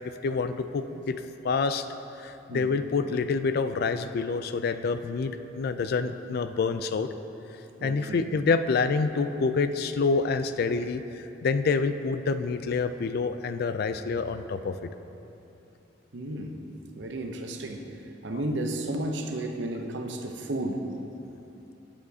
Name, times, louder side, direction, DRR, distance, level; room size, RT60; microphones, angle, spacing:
voice 1, 0.2-1.2 1.4-1.9 2.2-7.1 7.8-14.9 18.3-18.4, left 4 dB, 55° left, 10 dB, 0.3 m, -27 dB
voice 2, 7.8-8.3 16.1-16.6 17.0-17.8 18.2-20.8, right 1 dB, 70° right, 4 dB, 0.7 m, -33 dB
11.5 x 8.7 x 2.7 m, 2.9 s
head